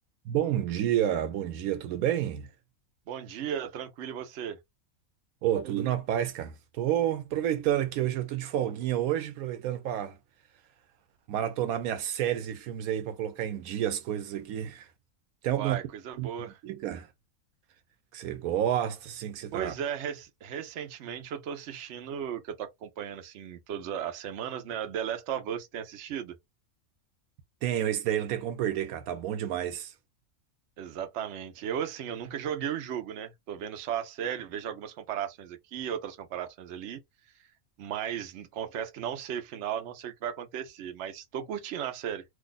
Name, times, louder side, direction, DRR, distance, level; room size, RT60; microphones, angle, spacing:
voice 1, 0.3-2.5 5.4-10.2 11.3-14.9 15.4-15.8 16.2-16.3 16.6-17.1 18.1-19.7 27.6-29.9, right 11 dB, 85° right, 1.1 m, -29 dB
voice 2, 3.1-4.6 15.5-16.6 19.5-26.3 30.8-37.0 37.8-42.2, right 9 dB, 60° right, 0.9 m, -36 dB
2.6 x 2.4 x 3.8 m
omnidirectional pair, 1.5 m